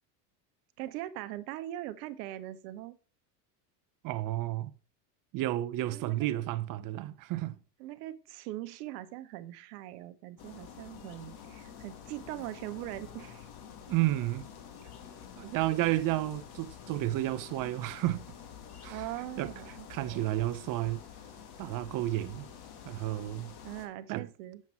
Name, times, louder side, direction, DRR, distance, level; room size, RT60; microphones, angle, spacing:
voice 1, 0.8-3.0 5.9-6.4 7.8-13.5 18.9-20.3 23.6-24.6, right 14 dB, 70° right, 0.9 m, -41 dB
voice 2, 4.0-4.7 5.3-7.6 13.9-14.5 15.4-18.3 18.8-19.1 19.4-19.5 19.9-21.0 21.6-22.5 22.8-23.5 24.1-24.3, right 15 dB, 45° right, 0.6 m, -31 dB
sound 1, 10.4-23.9, left 8 dB, 50° left, 1.5 m, -48 dB
7.4 x 5.4 x 4.6 m
hypercardioid pair, 95°, 48 cm